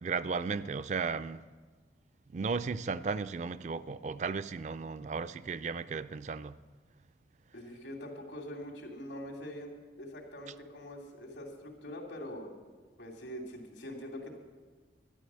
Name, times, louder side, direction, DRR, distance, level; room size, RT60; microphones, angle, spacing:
voice 1, 0.0-1.4 2.3-6.5, right 4 dB, 40° right, 14 dB, 0.3 m, -35 dB
voice 2, 7.5-9.7 10.0-12.6 13.0-14.4, equal, 90° left, 1 dB, 2.8 m, -43 dB
13.0 x 11.0 x 7.5 m, 1.4 s
head